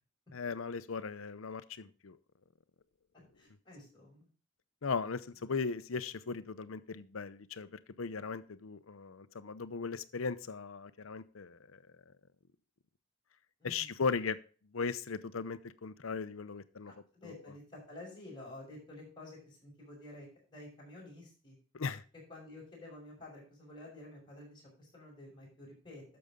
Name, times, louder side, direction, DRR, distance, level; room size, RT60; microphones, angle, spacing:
voice 1, 0.3-2.2 4.8-7.7 8.0-11.8 13.6-14.4 14.7-16.9 17.2-17.4 21.7-22.0, left 5 dB, 80° left, 0.7 m, -38 dB
voice 2, 3.4-4.3 13.6-13.9 16.9-21.6 22.3-26.0, left 1 dB, 20° left, 5.6 m, -51 dB
12.0 x 6.9 x 3.7 m
head